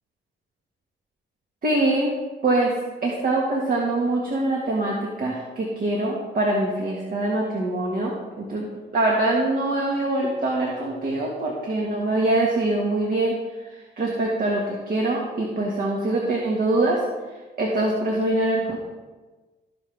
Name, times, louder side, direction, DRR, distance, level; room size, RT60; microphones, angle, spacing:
voice 1, 1.6-2.1 2.4-13.4 13.6-17.1 17.6-18.8, right 2 dB, 45° right, -2 dB, 1.7 m, -24 dB
16.0 x 5.5 x 3.4 m, 1.3 s
cardioid pair, 90°, 20 cm